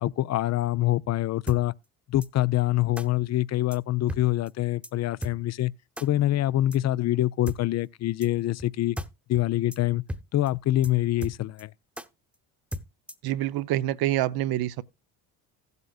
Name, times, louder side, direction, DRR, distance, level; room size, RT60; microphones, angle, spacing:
voice 1, 0.0-1.7 2.1-5.7 6.0-9.0 9.3-10.0 10.3-11.7, left 15 dB, 45° left, 0.5 m, -25 dB
sound 1, 1.5-1.6 2.2-2.3 3.0-3.1 3.7-3.8 4.1-4.2 4.5-4.6 4.8-4.9 5.2-5.3 6.0-6.1 6.7-6.8 7.5-7.6 8.2-8.3 8.6-8.7 9.0-9.1 9.3-9.4 9.7-9.8 10.1-10.2 10.5-10.6 10.8-10.9 11.2-11.6 12.0-12.1 12.7-13.3, equal, 5° right, 1.0 m, -35 dB
voice 2, 13.2-14.8, right 14 dB, 65° right, 0.7 m, -26 dB
15.5 x 8.1 x 2.4 m
supercardioid pair, 70°, 40 cm